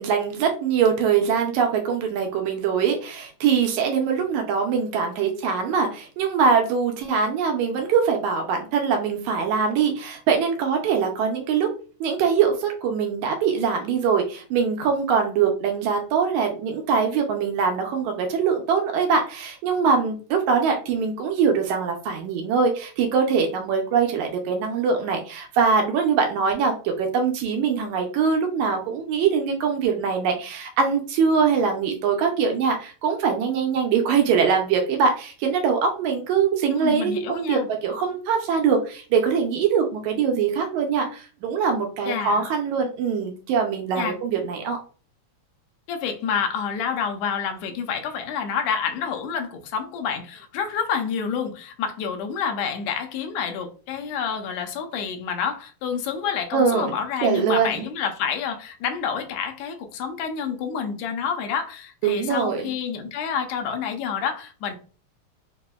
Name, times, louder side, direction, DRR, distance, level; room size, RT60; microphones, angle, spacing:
voice 1, 0.0-11.7 12.0-44.8 56.5-57.0 57.2-57.9 62.0-62.7, right 6 dB, 80° right, 3 dB, 1.9 m, -23 dB
voice 2, 36.7-37.7 42.1-42.4 44.0-44.2 45.9-64.8, left 7 dB, 80° left, 5 dB, 1.7 m, -28 dB
4.8 x 2.0 x 2.2 m, 0.38 s
omnidirectional pair, 3.4 m